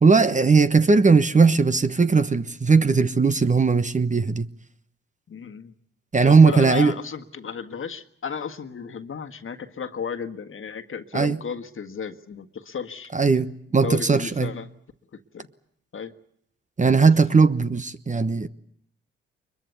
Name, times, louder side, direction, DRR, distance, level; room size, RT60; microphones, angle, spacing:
voice 1, 0.0-4.5 6.1-6.9 11.1-11.4 13.1-14.5 16.8-18.5, right 4 dB, 25° right, 1.1 m, -18 dB
voice 2, 5.3-5.7 6.2-13.1 13.8-14.7 15.1-15.5 15.9-16.1 17.0-17.1, left 6 dB, 45° left, 1.7 m, -34 dB
22.5 x 22.0 x 8.3 m
hypercardioid pair, 50°, 29 cm